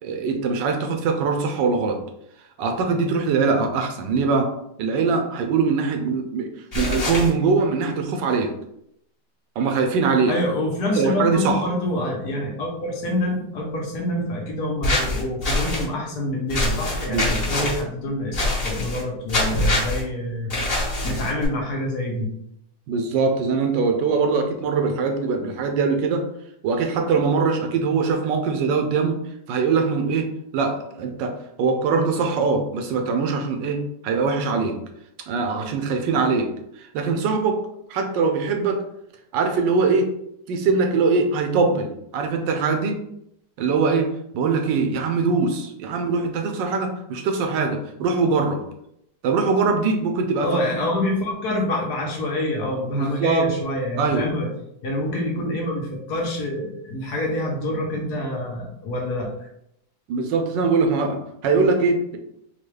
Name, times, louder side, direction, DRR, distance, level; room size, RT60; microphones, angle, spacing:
voice 1, 0.0-2.0 2.6-4.5 4.8-8.5 9.6-10.3 10.9-11.6 17.1-17.3 22.9-26.2 26.6-29.2 29.5-34.8 35.3-36.5 36.8-38.8 39.3-40.1 40.5-43.0 43.6-44.1 44.3-48.6 49.2-50.5 53.0-53.5 54.0-54.2 60.1-62.2, right 4 dB, 85° right, 4 dB, 1.3 m, -22 dB
sound 1, 6.7-7.3 14.8-15.8 16.5-17.8 18.3-19.0 19.3-20.0 20.5-21.5, left 1 dB, 35° left, 1.5 m, -24 dB
voice 2, 10.3-22.3 50.4-54.5 54.8-59.5, left 1 dB, 65° left, -1 dB, 1.4 m, -26 dB
4.4 x 2.3 x 3.2 m, 0.77 s
omnidirectional pair, 1.9 m